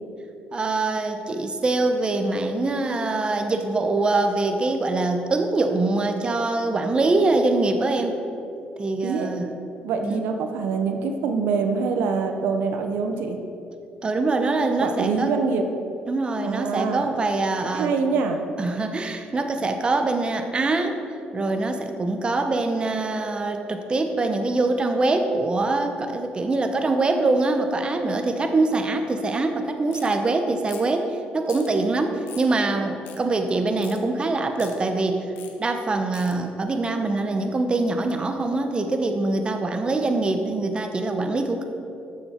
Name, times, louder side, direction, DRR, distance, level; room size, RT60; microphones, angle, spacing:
voice 1, 0.5-8.2 8.8-9.5 10.0-10.2 14.0-15.3 16.1-17.9 18.6-21.0 21.3-35.2 35.6-41.6, right 2 dB, 30° right, 6 dB, 0.9 m, -24 dB
voice 2, 9.8-13.4 14.8-15.6 16.4-17.1 17.7-18.4, right 5 dB, 85° right, 5 dB, 0.9 m, -25 dB
sound 1, 29.9-30.1 30.7-31.0 31.5-31.7 32.3-32.5 33.0-33.2 33.8-34.0 34.5-34.7 35.4-35.5 36.1-36.3, left 9 dB, 80° left, 1.1 m, -43 dB
12.5 x 7.1 x 4.4 m, 2.7 s
cardioid pair, 90°, 3 cm